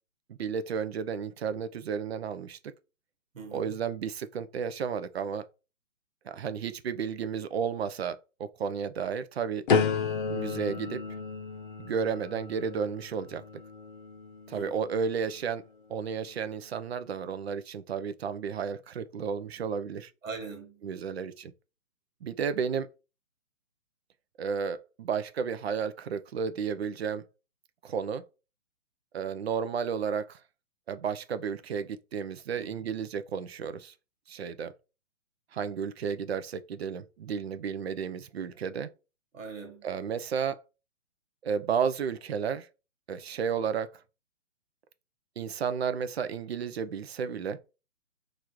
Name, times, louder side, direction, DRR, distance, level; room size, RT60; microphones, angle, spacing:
voice 1, 0.3-2.6 3.5-5.5 6.3-9.6 10.3-11.0 11.8-13.4 14.5-15.6 15.9-20.1 20.8-21.5 22.2-22.9 24.4-27.2 27.8-28.2 29.1-30.4 30.9-33.9 34.3-34.7 35.5-38.9 39.8-40.6 41.4-42.7 43.1-43.9 45.4-47.6, right 6 dB, 55° right, 0.5 m, -32 dB
voice 2, 3.3-3.7 14.5-14.9 20.2-20.9 32.6-32.8 39.3-39.9, right 4 dB, 85° right, 1.5 m, -41 dB
sound 1, 9.7-15.5 16.1-16.5, left 5 dB, 40° left, 0.6 m, -33 dB
3.1 x 2.5 x 4.4 m
hypercardioid pair, 155°, 38 cm